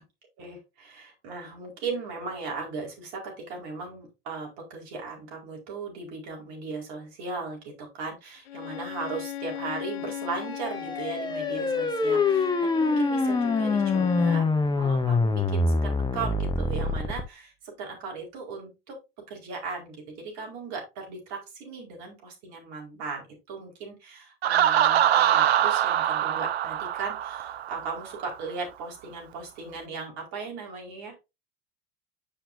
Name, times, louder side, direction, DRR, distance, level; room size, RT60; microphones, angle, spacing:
voice 1, 0.4-14.5 14.8-19.0 19.3-31.2, right 4 dB, 60° right, 0 dB, 4.8 m, -37 dB
Bowed string instrument, 8.5-14.5, left 11 dB, 70° left, 0.7 m, -37 dB
sound 1, 10.3-17.2, left 3 dB, 15° left, 1.1 m, -25 dB
Laughter, 24.4-28.1, right 11 dB, 85° right, 0.6 m, -23 dB
10.0 x 5.9 x 2.7 m, 0.25 s
hypercardioid pair, 75°, 31 cm